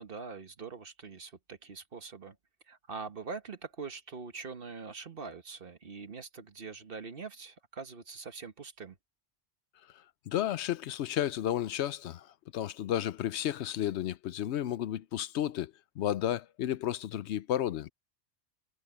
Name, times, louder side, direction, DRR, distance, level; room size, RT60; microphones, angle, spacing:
voice 1, 0.0-2.4 2.7-9.0, right 5 dB, 55° right, 1.5 m, -43 dB
voice 2, 10.3-12.3 12.5-17.9, left 11 dB, 80° left, 0.9 m, -32 dB
omnidirectional pair, 1.1 m